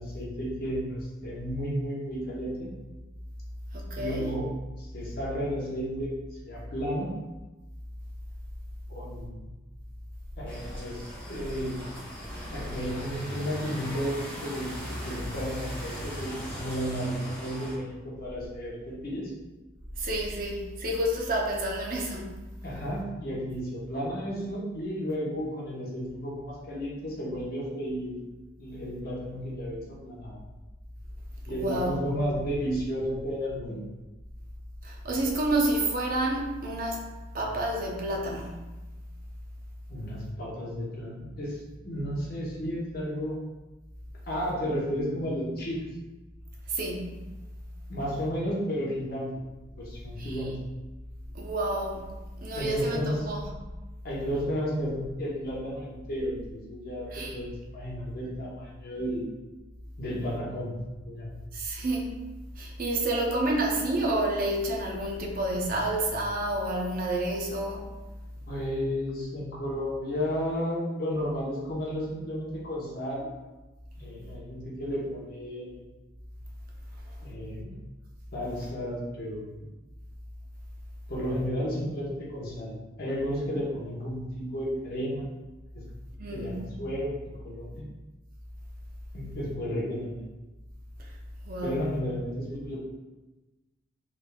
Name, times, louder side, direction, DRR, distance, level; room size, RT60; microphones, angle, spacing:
voice 1, 0.0-2.7 3.9-4.5 4.8-7.1 8.9-9.5 10.4-11.8 12.5-19.3 22.6-28.3 28.6-30.4 31.5-33.8 39.9-41.6 41.8-43.4 44.3-45.8 47.9-49.4 49.7-50.6 52.6-53.3 54.0-59.3 60.0-60.8 61.0-61.3 68.5-73.3 74.0-75.8 77.2-77.8 78.3-79.5 81.1-85.3 85.7-85.8 86.3-87.9 89.1-90.3 91.6-92.8, equal, 50° left, -5 dB, 1.0 m, -33 dB
voice 2, 3.7-4.3 20.0-22.3 31.5-32.2 34.8-37.0 37.3-38.6 46.7-47.3 50.2-50.4 51.3-52.1 52.4-53.5 57.1-57.3 61.5-62.1 62.6-67.9 86.2-86.5 91.0-91.1 91.4-91.8, right 1 dB, 45° right, -1 dB, 0.6 m, -29 dB
sound 1, 10.4-17.7, equal, 10° left, 1.0 m, -39 dB
3.7 x 3.3 x 2.3 m, 1.1 s
head